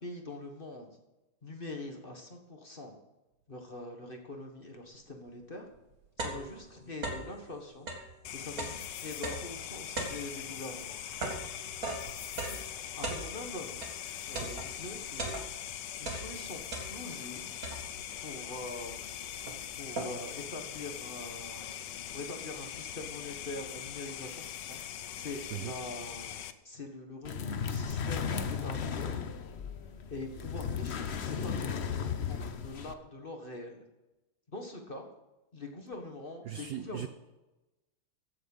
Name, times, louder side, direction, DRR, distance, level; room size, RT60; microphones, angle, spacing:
voice 1, 0.0-0.9 1.4-2.9 3.5-5.7 6.2-7.9 8.3-10.9 12.3-12.6 13.0-13.9 14.3-15.3 16.0-16.6 16.9-17.5 18.2-19.1 19.8-21.8 22.1-24.8 25.2-29.2 30.1-33.8 34.5-35.1 35.5-37.1, left 2 dB, 25° left, 1.5 m, -43 dB
sound 1, 5.3-5.4 5.7-7.4 7.8-14.0 14.3-15.7 16.0-17.2 17.6-18.2 18.8-18.9 19.1-20.4, right 2 dB, 45° right, 2.2 m, -39 dB
sound 2, 8.2-26.5, left 10 dB, 65° left, 1.2 m, -42 dB
sound 3, 27.3-32.9, left 6 dB, 90° left, 0.5 m, -35 dB
voice 2, 36.4-37.1, right 11 dB, 75° right, 0.9 m, -38 dB
15.5 x 7.8 x 5.5 m
omnidirectional pair, 2.4 m